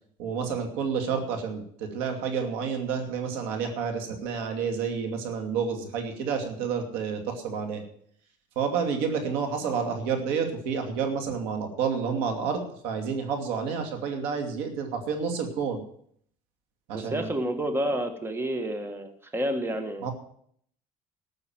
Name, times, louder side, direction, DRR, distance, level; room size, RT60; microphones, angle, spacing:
voice 1, 0.2-7.8 8.6-15.8 16.9-17.3 20.0-20.1, right 6 dB, 85° right, 4 dB, 2.6 m, -29 dB
voice 2, 16.9-20.1, right 1 dB, 15° right, 7 dB, 1.6 m, -29 dB
13.0 x 6.8 x 9.0 m, 0.65 s
cardioid pair, 115°, 16 cm